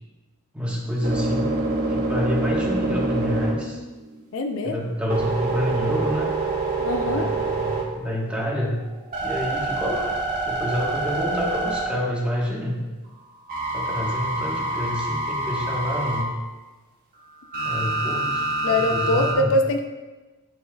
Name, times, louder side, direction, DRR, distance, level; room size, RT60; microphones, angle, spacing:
voice 1, 0.5-3.8 4.6-6.3 7.0-8.8 9.2-10.2 10.4-12.9 13.7-16.3 17.6-19.5, equal, 5° right, -4 dB, 1.2 m, -28 dB
sound 1, 0.7-4.2 4.7-8.2 8.7-12.4 13.5-16.3 17.5-19.3, right 2 dB, 40° right, 1.4 m, -26 dB
voice 2, 4.3-4.8 6.8-7.3 18.6-19.9, left 2 dB, 65° left, 6 dB, 0.5 m, -23 dB
12.0 x 4.3 x 2.3 m, 1.2 s
head